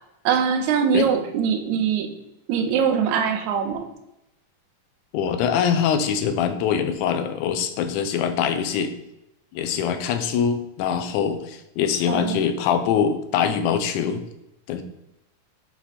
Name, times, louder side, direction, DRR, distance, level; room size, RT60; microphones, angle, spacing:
voice 1, 0.3-2.1 2.5-3.9 12.0-12.4, right 7 dB, 75° right, 4 dB, 2.0 m, -22 dB
voice 2, 5.1-8.9 9.5-14.2 14.7-14.8, left 7 dB, 80° left, 8 dB, 2.1 m, -23 dB
7.3 x 3.9 x 4.1 m, 0.86 s
omnidirectional pair, 3.5 m